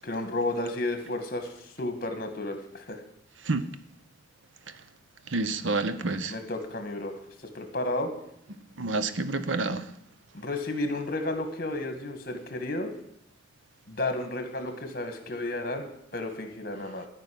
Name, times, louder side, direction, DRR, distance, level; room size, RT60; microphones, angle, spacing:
voice 1, 0.0-3.0 6.3-7.2 7.5-8.1 10.3-12.9 13.9-17.1, left 2 dB, 50° left, 2.0 m, -32 dB
voice 2, 5.3-6.3 8.8-9.9, right 3 dB, 85° right, 0.9 m, -28 dB
13.5 x 5.5 x 9.6 m
head